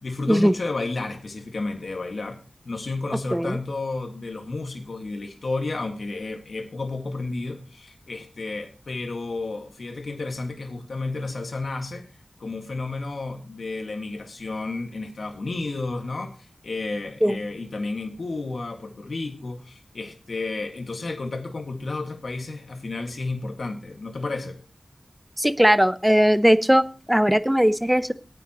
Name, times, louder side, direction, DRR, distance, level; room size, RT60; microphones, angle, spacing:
voice 1, 0.0-12.1 12.4-16.4 16.6-24.6, left 3 dB, 80° left, 5 dB, 1.9 m, -32 dB
voice 2, 25.4-28.1, equal, 5° right, 12 dB, 0.8 m, -19 dB
18.5 x 9.2 x 3.0 m, 0.35 s
wide cardioid pair, 80°, 0 cm